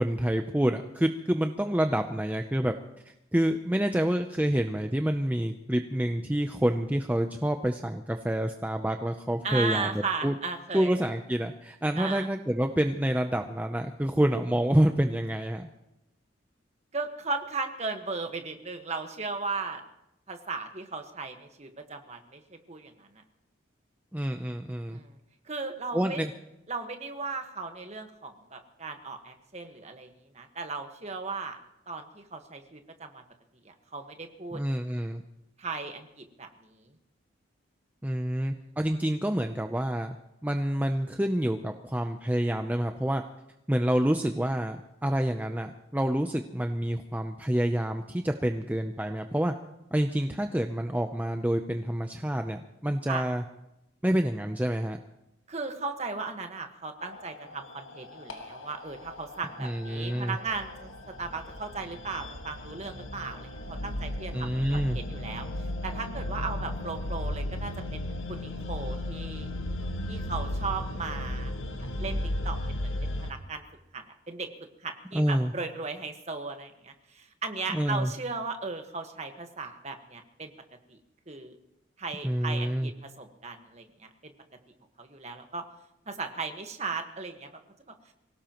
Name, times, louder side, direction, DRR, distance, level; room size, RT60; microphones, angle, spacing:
voice 1, 0.0-2.7 3.3-10.3 10.7-15.7 24.1-25.0 25.9-26.3 34.5-35.2 38.0-40.2 40.4-43.2 43.7-49.5 49.9-53.4 54.0-55.0 59.6-60.4 64.3-65.0 75.1-75.5 77.7-78.1 82.2-82.9, right 1 dB, 10° right, 5 dB, 0.5 m, -28 dB
voice 2, 9.4-10.9 12.0-12.3 16.9-19.8 20.3-23.2 24.9-25.2 25.4-26.2 26.7-31.6 31.9-33.2 33.6-34.6 35.6-36.9 38.4-38.5 53.1-53.2 55.5-65.5 65.8-69.5 70.1-71.5 72.0-72.2 72.4-73.6 73.9-74.5 74.8-80.5 80.9-81.0 81.3-81.6 82.0-84.3 85.0-85.6 86.1-87.5, right 4 dB, 35° right, 5 dB, 1.4 m, -36 dB
sound 1, 57.0-73.3, left 1 dB, 90° left, 1.6 m, -35 dB
24.5 x 17.5 x 3.0 m, 0.89 s
head